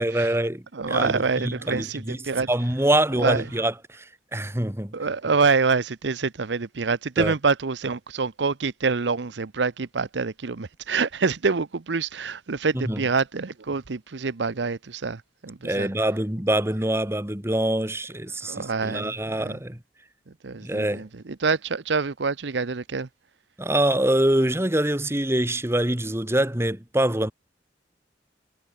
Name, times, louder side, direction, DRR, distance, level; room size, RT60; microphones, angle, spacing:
voice 1, 0.0-2.2 2.5-4.0 4.3-5.0 7.2-7.3 12.7-13.0 15.6-19.8 20.6-21.0 23.6-27.3, right 1 dB, 15° right, 1.8 m, -25 dB
voice 2, 0.7-2.5 3.2-3.4 4.9-15.9 18.4-19.6 20.4-23.1, right 4 dB, 75° right, 0.8 m, -26 dB
head